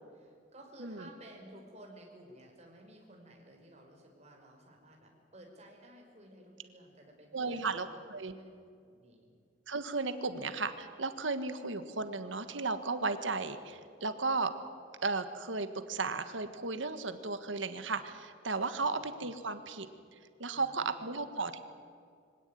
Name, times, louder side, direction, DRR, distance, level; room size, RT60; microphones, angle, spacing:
voice 1, 0.1-8.5 8.9-9.3 18.8-19.0 20.5-21.0, right 1 dB, 35° right, 1 dB, 5.5 m, -55 dB
voice 2, 7.3-8.3 9.7-14.5 15.0-19.9 20.4-21.6, right 3 dB, 90° right, 10 dB, 1.6 m, -35 dB
24.5 x 17.5 x 9.4 m, 2.2 s
head